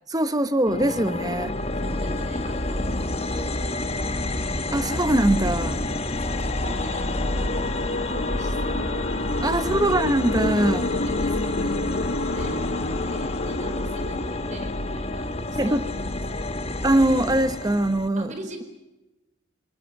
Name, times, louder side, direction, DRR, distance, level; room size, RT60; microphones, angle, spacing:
voice 1, 0.1-1.5 4.7-5.8 9.4-10.9 15.6-15.8 16.8-18.3, right 1 dB, 20° right, 12 dB, 1.0 m, -22 dB
sound 1, 0.7-18.1, left 2 dB, 30° left, 1.2 m, -29 dB
voice 2, 1.8-4.3 5.9-9.1 9.5-10.0 10.8-16.6 18.2-18.6, right 1 dB, 40° right, 6 dB, 4.4 m, -43 dB
sound 2, 5.3-15.3, left 2 dB, 50° left, 0.9 m, -30 dB
Wind instrument woodwind instrument, 6.3-9.5 10.2-12.9, right 2 dB, 75° right, 5.5 m, -42 dB
27.0 x 20.5 x 7.0 m, 1.0 s
head